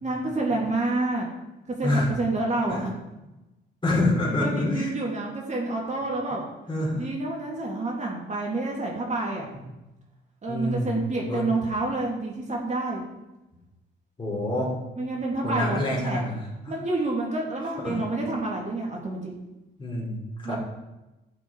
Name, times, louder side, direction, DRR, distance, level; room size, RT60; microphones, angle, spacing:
voice 1, 0.0-1.3 1.7-2.9 4.4-6.4 6.9-9.5 10.4-13.0 15.0-16.2 16.7-19.3 20.4-20.6, right 2 dB, 35° right, -2 dB, 3.1 m, -28 dB
voice 2, 3.8-4.9 6.7-7.0 10.5-11.4 14.2-14.7 15.4-16.4 16.7-16.8 17.6-18.0 19.8-20.6, left 1 dB, 25° left, -3 dB, 4.2 m, -27 dB
14.0 x 6.9 x 5.0 m, 1.0 s
cardioid pair, 90°, 20 cm